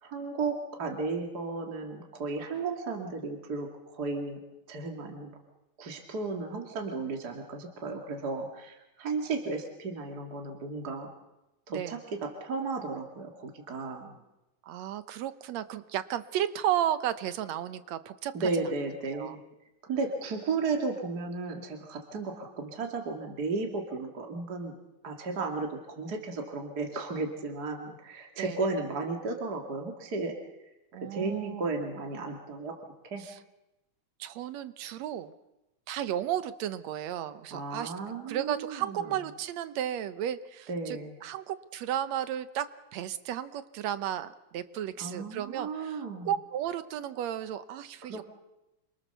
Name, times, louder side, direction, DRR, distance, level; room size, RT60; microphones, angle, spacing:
voice 1, 0.0-4.4 4.7-5.3 5.8-11.1 11.7-14.1 18.3-19.4 19.9-24.8 25.0-30.4 31.0-32.8 33.0-33.2 37.5-39.0 40.7-41.1 45.0-46.3 48.1-48.2, right 3 dB, 35° right, 2 dB, 2.7 m, -34 dB
voice 2, 14.6-18.7 19.1-19.4 28.4-28.6 30.9-31.8 33.2-33.4 34.2-35.3 35.9-37.9 38.3-48.2, right 11 dB, 70° right, 12 dB, 2.1 m, -34 dB
28.0 x 24.0 x 6.9 m, 0.95 s
omnidirectional pair, 3.4 m